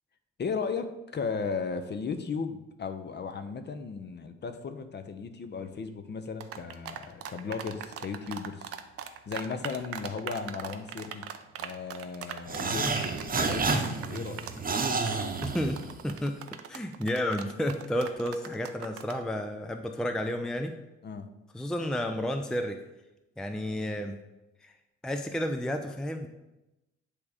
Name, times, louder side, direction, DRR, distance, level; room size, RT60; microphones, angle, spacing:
voice 1, 0.4-8.7 9.3-11.3 11.6-14.5 21.0-21.3, left 5 dB, 30° left, 8 dB, 0.8 m, -36 dB
sound 1, 6.4-19.2, right 9 dB, 45° right, 0.7 m, -40 dB
sound 2, 12.5-16.2, right 4 dB, 25° right, 1.1 m, -30 dB
voice 2, 15.4-16.4 16.7-20.8 21.5-22.8 23.4-24.2 24.6-24.7 25.0-26.3, equal, ahead, 6 dB, 0.6 m, -31 dB
9.7 x 3.5 x 5.0 m, 0.97 s
figure-of-eight pair, 50°, 34 cm